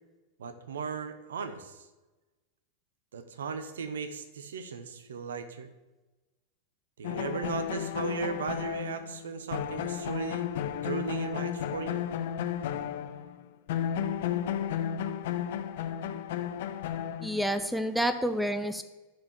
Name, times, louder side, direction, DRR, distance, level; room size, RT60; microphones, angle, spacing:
voice 1, 0.4-1.9 3.1-5.7 7.0-10.6 10.8-12.0, right 5 dB, 65° right, 10 dB, 0.9 m, -36 dB
sound 1, 7.0-13.4 13.7-17.7, left 10 dB, 55° left, 0.7 m, -33 dB
voice 2, 17.2-18.8, equal, ahead, 7 dB, 0.6 m, -29 dB
10.5 x 4.8 x 7.3 m, 1.1 s
figure-of-eight pair, 90°, 0 cm